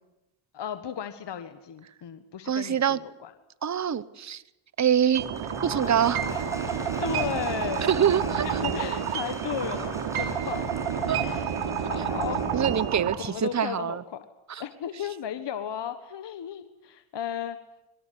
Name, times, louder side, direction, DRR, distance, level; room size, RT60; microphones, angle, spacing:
voice 1, 0.5-3.3 7.0-8.0 8.4-10.7 11.2-12.4 13.2-14.2 14.6-17.6, left 9 dB, 55° left, 9 dB, 1.6 m, -35 dB
voice 2, 2.5-3.0 3.6-4.4 4.8-6.2 7.8-8.6 11.1-11.2 12.5-14.0 14.5-14.6, right 8 dB, 35° right, 17 dB, 1.1 m, -25 dB
Applause / Crowd, 5.1-13.3, equal, 5° right, 8.0 m, -42 dB
sound 1, 5.1-13.1, right 7 dB, 85° right, 3.5 m, -29 dB
22.5 x 19.5 x 9.8 m, 0.92 s
cardioid pair, 85°, 50 cm